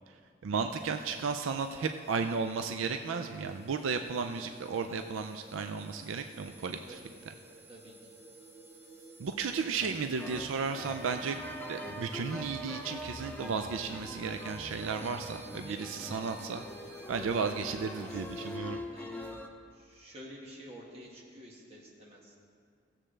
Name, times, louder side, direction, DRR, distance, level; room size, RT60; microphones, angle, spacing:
voice 1, 0.4-7.0 9.2-11.4 11.7-16.6 17.1-18.8, right 5 dB, 85° right, 7 dB, 0.4 m, -34 dB
sound 1, 0.7-18.6, right 2 dB, 10° right, 0.8 m, -53 dB
sound 2, 9.8-19.5, left 1 dB, 10° left, 0.5 m, -43 dB
voice 2, 15.6-16.1 18.0-18.5 18.9-19.4 19.7-22.4, right 1 dB, 30° right, -3 dB, 1.7 m, -50 dB
16.5 x 7.4 x 3.3 m, 2.2 s
head